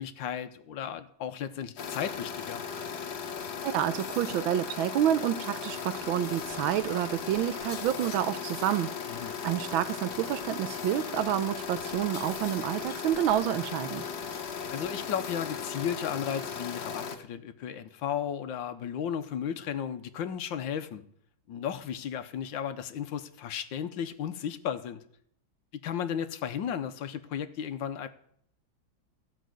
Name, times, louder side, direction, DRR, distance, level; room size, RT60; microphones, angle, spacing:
voice 1, 0.0-2.6 9.1-9.4 14.7-21.0 21.5-25.0 25.8-28.1, left 8 dB, 75° left, 1.5 m, -34 dB
sound 1, 1.8-17.2, left 6 dB, 55° left, 1.6 m, -37 dB
voice 2, 3.6-14.1, right 11 dB, 80° right, 1.5 m, -29 dB
15.0 x 5.2 x 7.7 m
omnidirectional pair, 2.2 m